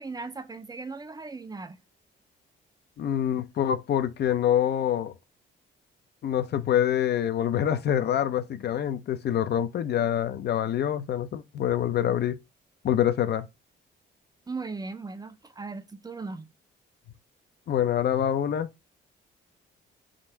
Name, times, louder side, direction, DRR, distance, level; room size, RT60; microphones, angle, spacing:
voice 1, 0.0-1.8 14.5-16.5, right 3 dB, 20° right, 0.5 m, -38 dB
voice 2, 3.0-5.1 6.2-12.4 12.8-13.5 17.7-18.7, left 10 dB, 55° left, 0.5 m, -26 dB
3.8 x 2.5 x 4.4 m
cardioid pair, 90°, 20 cm